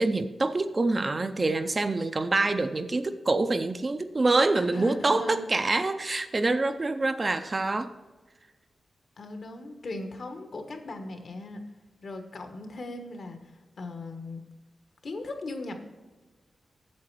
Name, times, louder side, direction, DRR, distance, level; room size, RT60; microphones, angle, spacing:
voice 1, 0.0-7.9, right 2 dB, 25° right, 9 dB, 0.5 m, -26 dB
voice 2, 4.5-5.5 9.2-11.6 12.0-14.4 15.0-15.8, left 2 dB, 55° left, 6 dB, 1.3 m, -38 dB
8.6 x 7.5 x 4.6 m, 1.2 s
wide cardioid pair, 170°, 0 cm